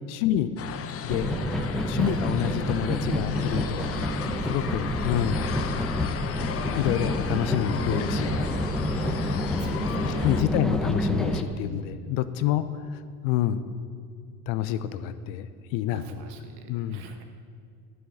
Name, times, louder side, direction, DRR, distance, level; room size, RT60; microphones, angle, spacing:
voice 1, 0.1-0.5 1.0-1.3 1.9-3.9 4.4-5.4 6.6-8.4 10.2-12.7 12.9-13.6 14.5-16.2 16.7-17.0, left 11 dB, 60° left, 12 dB, 0.8 m, -28 dB
sound 1, 0.6-10.4, left 7 dB, 30° left, 0.8 m, -35 dB
sound 2, 1.1-11.4, left 1 dB, ahead, 0.9 m, -28 dB
voice 2, 8.8-10.3 11.7-11.8 15.9-17.2, right 5 dB, 60° right, 6 dB, 1.6 m, -43 dB
11.0 x 6.6 x 8.9 m, 2.3 s
hypercardioid pair, 85°, 44 cm